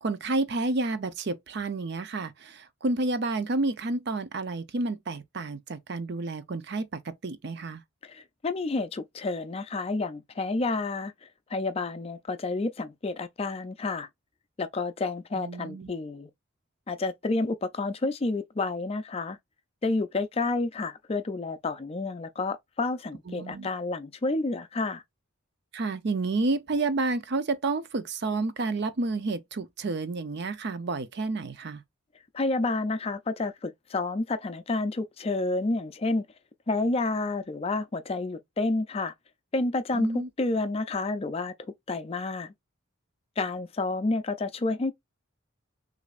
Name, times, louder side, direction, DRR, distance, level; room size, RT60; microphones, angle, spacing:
voice 1, 0.0-7.8 15.3-15.9 23.3-23.7 25.7-31.8 39.9-40.3, right 3 dB, 50° right, 0.5 m, -30 dB
voice 2, 8.0-14.1 14.6-16.3 16.9-19.4 19.8-25.0 32.3-36.3 36.7-39.1 39.5-40.1 40.4-42.5 43.4-44.9, left 3 dB, 30° left, 0.4 m, -30 dB
6.3 x 2.6 x 2.4 m
head